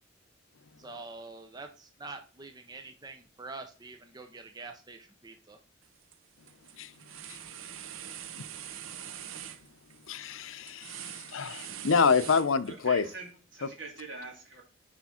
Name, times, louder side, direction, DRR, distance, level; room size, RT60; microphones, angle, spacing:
voice 1, 0.8-5.6, right 3 dB, 20° right, 0.5 m, -45 dB
sound 1, 5.8-6.2 6.5-13.0, right 10 dB, 85° right, 0.6 m, -44 dB
voice 2, 10.1-13.0, left 5 dB, 75° left, 0.6 m, -27 dB
voice 3, 12.7-14.6, right 3 dB, 65° right, 2.0 m, -44 dB
6.0 x 5.1 x 4.2 m
head